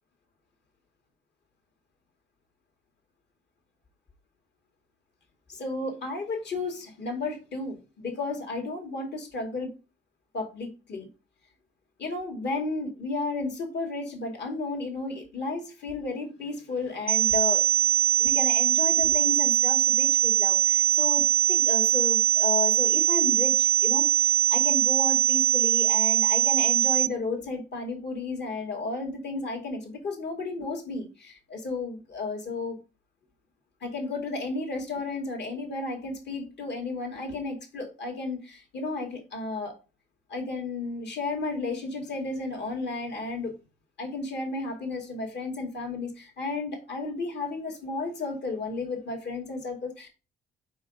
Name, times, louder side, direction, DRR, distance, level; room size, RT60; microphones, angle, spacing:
voice 1, 5.5-9.7 10.3-11.1 12.0-17.7 18.2-32.8 33.8-39.8 40.3-43.5 44.0-50.1, left 3 dB, 60° left, 2 dB, 2.3 m, -33 dB
sound 1, 17.1-27.1, right 11 dB, 30° right, 0.4 m, -22 dB
5.4 x 5.3 x 3.6 m, 0.31 s
cardioid pair, 90°, 20 cm